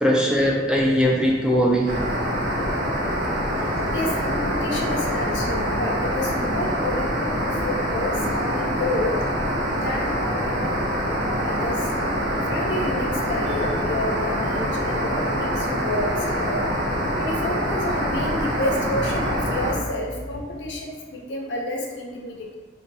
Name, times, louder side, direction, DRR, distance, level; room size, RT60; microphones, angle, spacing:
voice 1, 0.0-1.9 16.6-16.8, equal, 5° right, -2 dB, 0.3 m, -20 dB
sound 1, 1.9-19.7, equal, 70° right, 0.7 m, -25 dB
voice 2, 3.9-9.1 9.8-10.7 11.2-11.8 12.5-16.6 17.2-22.6, left 1 dB, 75° left, -1 dB, 0.6 m, -29 dB
2.7 x 2.2 x 3.9 m, 1.4 s
head